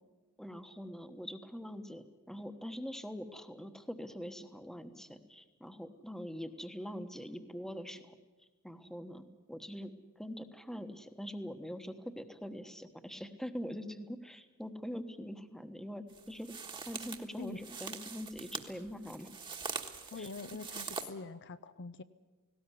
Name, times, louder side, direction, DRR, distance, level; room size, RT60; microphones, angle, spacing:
voice 1, 0.4-8.1 8.6-16.5 16.9-19.3 20.2-20.3, equal, ahead, 8 dB, 1.2 m, -43 dB
sound 1, 16.1-21.1, right 5 dB, 20° right, 1.5 m, -43 dB
voice 2, 20.1-22.0, left 4 dB, 55° left, 12 dB, 0.7 m, -44 dB
19.0 x 17.5 x 9.8 m, 1.2 s
head